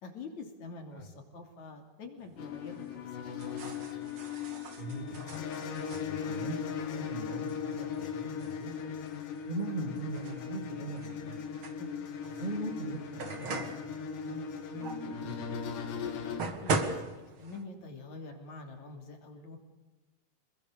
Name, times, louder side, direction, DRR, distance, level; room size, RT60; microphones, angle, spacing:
voice 1, 0.0-2.8 3.1-3.3 11.8-11.9 16.5-16.8 17.2-19.6, left 3 dB, 45° left, 5 dB, 3.8 m, -46 dB
sound 1, 2.2-17.6, right 3 dB, 40° right, 2.0 m, -41 dB
sound 2, 2.4-16.4, left 7 dB, 70° left, 4.3 m, -38 dB
voice 2, 4.8-5.4 5.9-8.8 9.4-11.5 12.2-15.7, right 2 dB, 20° right, 3 dB, 1.2 m, -41 dB
27.0 x 22.0 x 6.9 m, 1.1 s
omnidirectional pair, 5.3 m